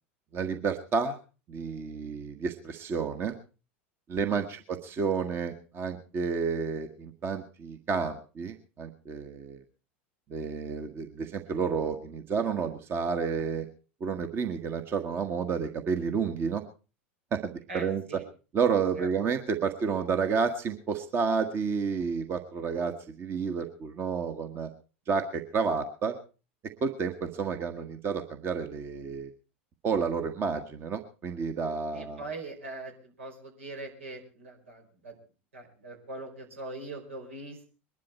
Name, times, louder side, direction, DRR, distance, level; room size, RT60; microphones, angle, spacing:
voice 1, 0.3-1.2 1.5-3.4 4.1-9.6 10.3-13.7 14.0-16.6 17.3-18.2 18.5-24.7 25.1-26.2 26.8-29.3 29.8-32.2, right 5 dB, 35° right, 6 dB, 1.5 m, -30 dB
voice 2, 17.7-18.2 19.0-19.1 31.9-35.2 35.5-37.7, right 2 dB, 80° right, 2 dB, 4.7 m, -42 dB
22.0 x 11.5 x 4.4 m, 0.35 s
hypercardioid pair, 85°, 7 cm